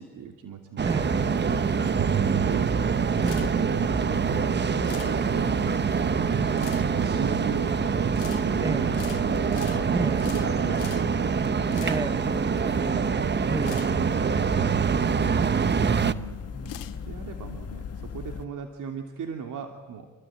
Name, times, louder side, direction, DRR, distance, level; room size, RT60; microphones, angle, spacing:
voice 1, 0.0-1.5 1.8-2.7 3.5-5.6 6.3-6.5 6.8-11.3 15.9-16.4 17.0-20.1, right 7 dB, 55° right, 3 dB, 2.9 m, -37 dB
voice 2, 0.8-1.2 3.2-3.6 8.6-8.9 9.9-10.2 11.8-12.5 12.8-13.0 13.5-13.9 16.5-16.9, right 2 dB, 10° right, 13 dB, 0.8 m, -33 dB
sound 1, 0.8-16.1, right 6 dB, 30° right, 1.0 m, -25 dB
sound 2, 1.0-18.5, left 6 dB, 40° left, 1.9 m, -38 dB
sound 3, 2.5-17.9, left 11 dB, 65° left, 2.0 m, -46 dB
29.0 x 23.5 x 8.9 m, 1.4 s
supercardioid pair, 80°, 36 cm